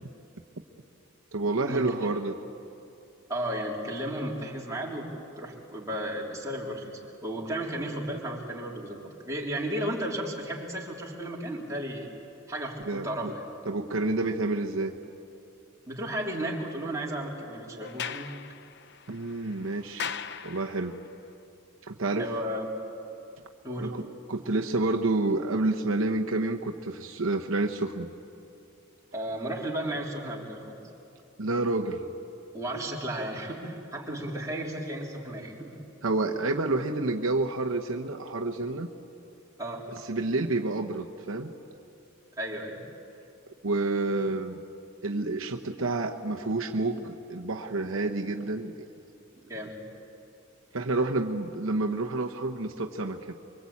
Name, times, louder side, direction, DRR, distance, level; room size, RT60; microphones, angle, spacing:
voice 1, 1.3-2.4 12.9-13.3 13.7-14.9 19.1-20.1 20.4-21.0 21.8-22.3 23.8-28.1 31.4-32.0 36.0-38.9 39.9-41.5 43.6-44.6 45.0-48.9 50.7-53.3, right 2 dB, 65° right, 3 dB, 1.0 m, -29 dB
voice 2, 3.3-5.1 5.4-12.1 12.5-13.5 15.9-18.4 22.2-22.8 23.6-23.9 29.1-30.8 32.5-35.8 39.6-39.9 42.4-42.8 49.3-49.8, right 1 dB, 15° right, -3 dB, 3.4 m, -34 dB
Sliding door, 17.8-21.1, left 7 dB, 50° left, 0.7 m, -39 dB
24.5 x 24.0 x 8.6 m, 2.8 s
head